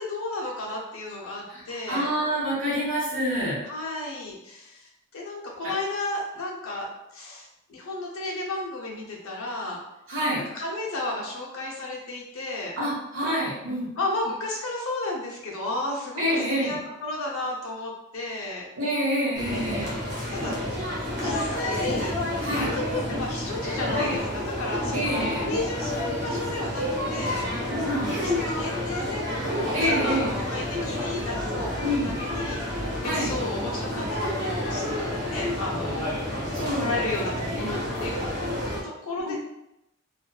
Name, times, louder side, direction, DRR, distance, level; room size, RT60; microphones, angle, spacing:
voice 1, 0.0-2.1 3.6-9.8 10.5-12.8 14.0-18.7 20.3-22.2 22.6-27.5 28.0-28.3 28.6-36.1 36.8-38.2 38.8-39.4, left 2 dB, 70° left, -3 dB, 0.6 m, -33 dB
voice 2, 1.5-3.6 10.1-10.4 12.8-13.9 16.2-16.8 18.8-19.9 22.4-22.7 23.9-24.2 24.9-25.4 27.7-28.1 29.7-30.3 31.8-32.2 33.0-33.3 36.5-37.0 37.5-37.7 39.2-39.3, equal, 65° right, -9 dB, 1.0 m, -27 dB
sound 1, 19.3-38.8, left 1 dB, 50° right, 0.7 m, -29 dB
2.5 x 2.3 x 2.2 m, 0.86 s
head